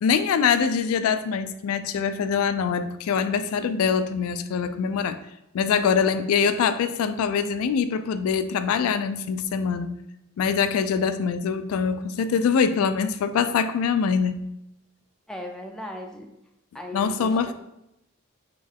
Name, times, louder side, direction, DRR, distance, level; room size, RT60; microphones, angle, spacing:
voice 1, 0.0-5.2 5.5-9.9 10.4-14.4 16.9-17.5, left 6 dB, 85° left, 11 dB, 0.3 m, -24 dB
voice 2, 15.3-16.3 16.7-17.5, equal, 5° left, 2 dB, 0.3 m, -37 dB
3.8 x 3.0 x 3.5 m, 0.85 s
head